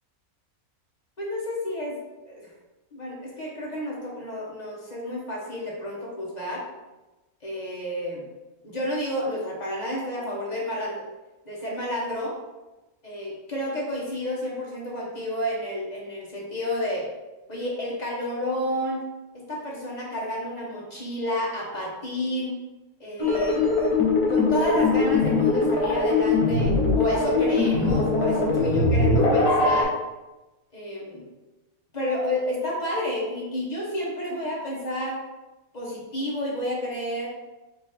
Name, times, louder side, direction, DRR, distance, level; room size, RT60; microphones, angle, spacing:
voice 1, 1.2-2.0 2.2-2.5 2.9-6.6 7.4-8.2 8.6-11.0 11.4-12.3 13.0-17.0 17.5-19.0 19.3-22.6 23.0-23.6 24.3-29.9 30.7-31.3 31.9-35.2 35.7-37.3, left 1 dB, 35° left, -4 dB, 1.0 m, -30 dB
sound 1, 23.2-29.8, left 3 dB, 80° left, 1.6 m, -21 dB
3.6 x 3.1 x 4.1 m, 1.1 s
omnidirectional pair, 1.6 m